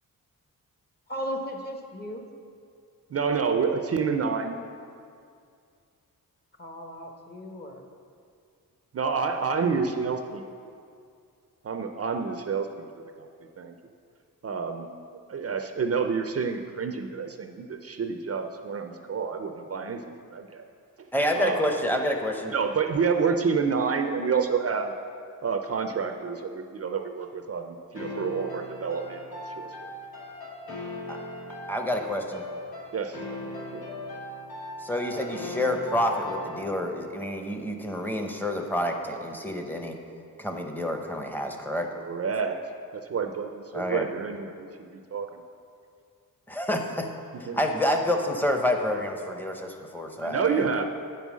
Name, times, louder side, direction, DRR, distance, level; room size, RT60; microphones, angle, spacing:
voice 1, 1.1-2.2 6.6-7.8 9.2-9.4, equal, 30° left, 2 dB, 1.0 m, -36 dB
voice 2, 3.1-4.6 8.9-10.4 11.6-12.9 13.6-13.7 14.4-14.9 15.3-20.0 20.3-20.7 21.3-21.6 22.5-24.9 25.4-29.8 32.9-33.2 33.7-33.8 42.0-42.6 42.9-45.4 47.5-47.6 50.2-50.8, right 5 dB, 45° right, 6 dB, 0.5 m, -28 dB
voice 3, 21.1-22.5 31.1-31.2 31.7-32.4 34.8-40.0 40.4-41.9 43.7-44.1 46.5-47.1 47.4-50.8, left 1 dB, 5° left, 3 dB, 0.8 m, -28 dB
sound 1, 28.0-36.8, left 1 dB, 80° left, 2.2 m, -39 dB
8.8 x 5.5 x 6.2 m, 2.3 s
wide cardioid pair, 105°, 35 cm